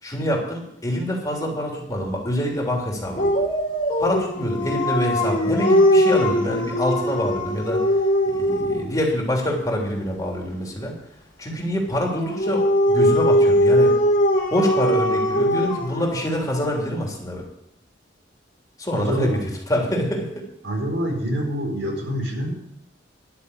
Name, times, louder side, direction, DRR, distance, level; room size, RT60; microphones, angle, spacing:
voice 1, 0.0-3.4 4.0-7.8 8.3-10.9 11.4-14.0 14.5-17.5 18.8-19.4 19.7-20.4, equal, 20° left, -1 dB, 3.2 m, -25 dB
Dog, 3.1-9.0 12.1-16.7, equal, 45° left, 3.1 m, -20 dB
voice 2, 19.0-19.4 20.6-22.5, equal, 80° right, -1 dB, 4.7 m, -26 dB
12.0 x 6.8 x 9.9 m, 0.77 s
head